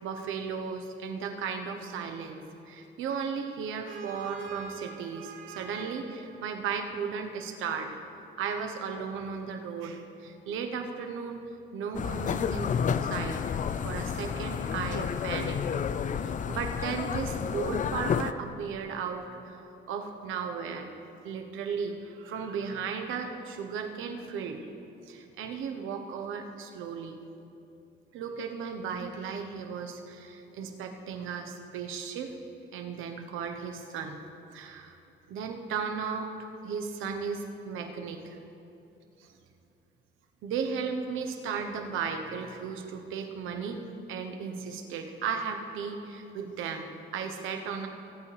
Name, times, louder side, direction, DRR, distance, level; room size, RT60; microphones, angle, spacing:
voice 1, 0.0-2.4 2.7-7.9 8.4-11.4 11.7-12.7 13.0-13.4 13.8-15.9 16.2-20.9 21.2-24.7 25.1-27.2 28.1-32.3 32.7-34.2 34.5-35.0 35.3-38.4 39.2-39.3 40.4-43.8 44.1-47.9, right 6 dB, 90° right, 4 dB, 1.1 m, -35 dB
sound 1, 11.9-18.3, left 7 dB, 40° left, 0.4 m, -30 dB
19.5 x 8.6 x 3.4 m, 2.7 s
cardioid pair, 90°, 20 cm